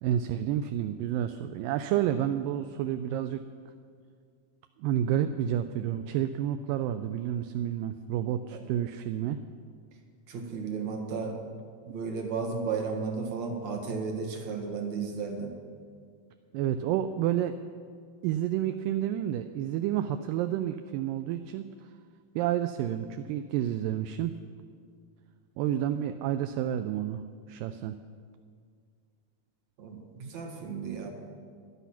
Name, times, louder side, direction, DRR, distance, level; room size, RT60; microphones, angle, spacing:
voice 1, 0.0-3.4 4.8-9.4 16.5-17.5 18.2-21.9 22.4-24.3 25.6-28.0, right 11 dB, 80° right, 9 dB, 2.1 m, -30 dB
voice 2, 10.3-11.4 11.9-15.5 29.8-31.1, right 5 dB, 55° right, 3 dB, 2.6 m, -34 dB
18.0 x 11.5 x 5.8 m, 2.1 s
omnidirectional pair, 4.1 m